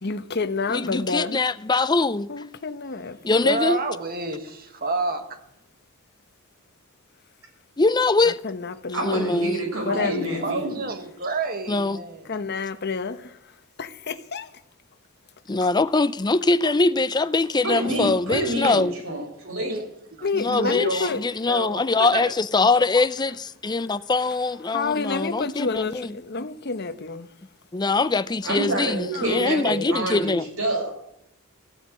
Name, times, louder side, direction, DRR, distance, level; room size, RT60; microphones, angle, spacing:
voice 1, 0.0-1.4 2.3-3.6 8.2-9.1 9.8-10.5 12.2-14.5 20.2-21.2 24.7-27.3 29.1-29.7, left 4 dB, 50° left, 0.9 m, -29 dB
voice 2, 0.7-2.3 3.2-3.8 7.8-8.4 9.0-9.6 11.7-12.0 15.5-18.9 20.3-26.1 26.4-26.5 27.7-30.4, left 3 dB, 20° left, 0.5 m, -23 dB
voice 3, 3.4-5.4 9.9-10.2 10.4-12.2 19.4-19.9 20.2-21.1 21.5-22.2, right 3 dB, 45° right, 1.6 m, -29 dB
voice 4, 8.9-10.9 17.6-19.2 19.5-19.8 28.4-31.0, right 1 dB, 75° right, 6.1 m, -27 dB
15.0 x 9.2 x 8.5 m
head